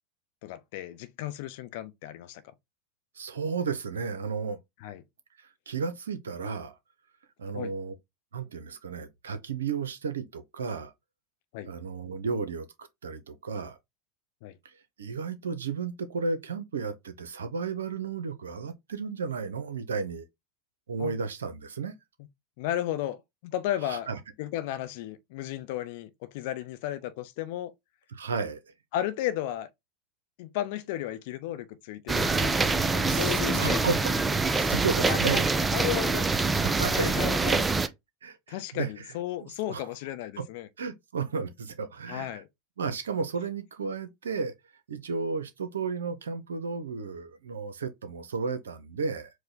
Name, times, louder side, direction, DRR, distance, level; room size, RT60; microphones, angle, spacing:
voice 1, 0.4-2.5 4.8-5.0 7.5-7.7 11.5-11.7 14.4-14.6 21.0-21.1 22.6-24.1 24.4-27.7 28.9-29.7 30.4-33.9 35.0-35.4 35.7-36.4 36.9-37.7 38.5-40.7 42.1-42.5, left 13 dB, 60° left, 0.5 m, -34 dB
voice 2, 3.2-4.6 5.4-6.7 7.4-7.9 8.3-10.9 11.6-13.8 15.0-20.3 20.9-21.9 23.8-24.2 28.1-28.6 33.0-35.5 36.6-37.1 38.2-38.9 39.4-39.8 40.4-40.5 40.8-42.4 42.8-44.5 44.9-49.3, right 5 dB, 80° right, 0.6 m, -33 dB
binaural lmnln rain inside, 32.1-37.9, right 3 dB, 15° right, 0.4 m, -25 dB
4.7 x 2.2 x 3.8 m
figure-of-eight pair, 85°, 0 cm